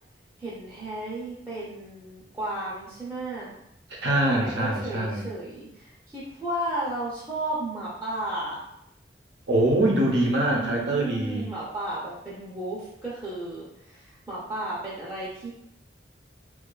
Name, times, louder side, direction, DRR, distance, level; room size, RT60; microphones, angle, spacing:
voice 1, 0.4-3.6 4.2-8.6 10.2-15.5, right 1 dB, 15° right, -8 dB, 0.5 m, -34 dB
voice 2, 3.9-5.3 9.5-11.4, right 1 dB, 85° right, -2 dB, 0.7 m, -23 dB
2.5 x 2.2 x 2.3 m, 0.79 s
head